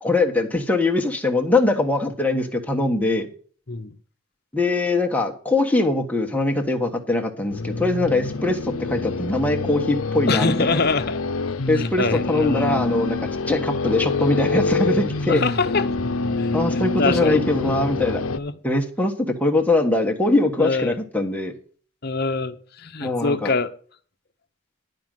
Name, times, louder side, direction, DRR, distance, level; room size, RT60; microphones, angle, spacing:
voice 1, 0.0-3.3 4.5-10.8 11.7-13.2 13.5-15.4 16.5-18.2 18.6-19.1 19.4-21.5 23.0-23.5, left 2 dB, 5° left, 1.3 m, -22 dB
sound 1, 7.5-18.4, left 3 dB, 80° left, 0.7 m, -26 dB
voice 2, 10.3-11.2 11.7-12.8 15.3-15.9 16.4-17.9 18.3-18.6 20.6-21.0 22.0-23.7, left 4 dB, 50° left, 0.9 m, -25 dB
11.0 x 5.2 x 7.6 m
head